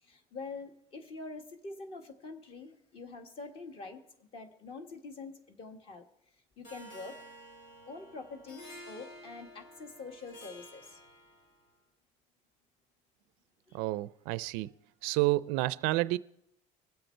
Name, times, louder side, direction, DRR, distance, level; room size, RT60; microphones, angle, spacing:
voice 1, 0.0-6.1 6.6-7.2 7.9-11.0 13.7-13.8, left 3 dB, 35° left, 1.5 m, -45 dB
Harp, 6.6-11.6, equal, 90° left, 4.0 m, -51 dB
voice 2, 13.7-14.7 15.0-16.2, right 19 dB, 70° right, 0.4 m, -30 dB
23.0 x 7.9 x 4.4 m
cardioid pair, 165°, 15 cm